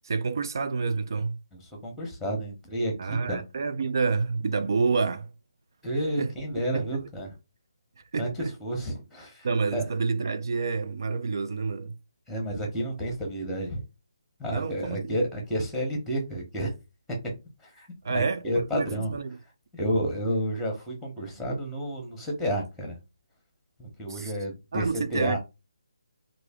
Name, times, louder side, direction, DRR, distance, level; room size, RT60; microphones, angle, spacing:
voice 1, 0.0-1.4 3.0-5.3 6.2-6.3 6.7-7.0 8.1-8.5 9.4-12.0 14.5-15.2 18.0-19.4 24.1-24.3 24.7-25.4, right 4 dB, 60° right, 0.4 m, -28 dB
voice 2, 1.5-3.4 5.8-7.4 8.2-9.8 12.3-13.8 14.4-16.7 17.2-17.3 17.6-19.1 19.7-23.0 23.8-25.4, equal, ahead, 0.9 m, -31 dB
3.2 x 2.5 x 3.5 m
figure-of-eight pair, 155°, 2 cm